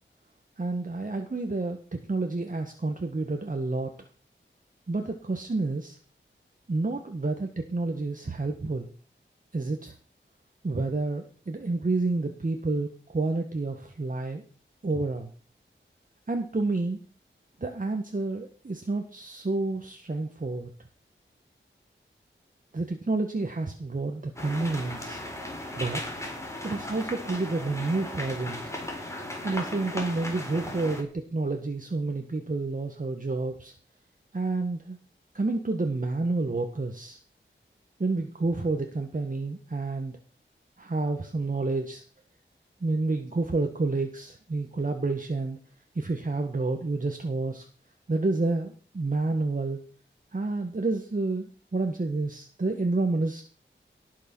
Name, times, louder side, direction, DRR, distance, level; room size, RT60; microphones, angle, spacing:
voice 1, 0.6-3.9 4.9-6.0 6.7-8.9 9.5-9.9 10.6-14.4 14.8-15.3 16.3-17.0 17.6-20.7 22.7-25.2 25.8-26.0 26.6-28.7 29.4-33.7 34.3-35.0 35.3-37.2 38.0-40.2 40.8-42.0 42.8-45.6 45.9-47.6 48.1-49.8 50.3-53.4, right 3 dB, 40° right, 4 dB, 1.6 m, -29 dB
sound 1, 24.4-31.0, left 1 dB, 15° left, 4.2 m, -36 dB
18.0 x 6.6 x 6.3 m, 0.40 s
wide cardioid pair, 85°, 20 cm